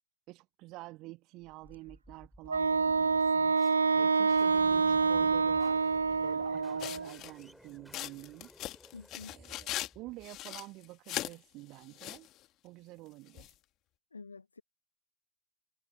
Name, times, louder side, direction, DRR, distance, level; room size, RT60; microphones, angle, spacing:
voice 1, 0.3-5.9 6.2-8.5 9.2-12.3 12.6-13.6, right 20 dB, 50° right, 1.6 m, -49 dB
sound 1, 1.4-10.6, equal, ahead, 5.1 m, -57 dB
Wind instrument woodwind instrument, 2.5-7.1, right 4 dB, 80° right, 0.3 m, -27 dB
voice 2, 4.9-5.3 6.5-6.6 8.9-9.3 14.1-14.6, left 4 dB, 80° left, 1.4 m, -50 dB
sound 2, 6.8-7.4 7.9-9.9 10.2-11.3 11.8-12.3 13.4-13.5, left 15 dB, 45° left, 2.2 m, -39 dB
figure-of-eight pair, 70°, 0 cm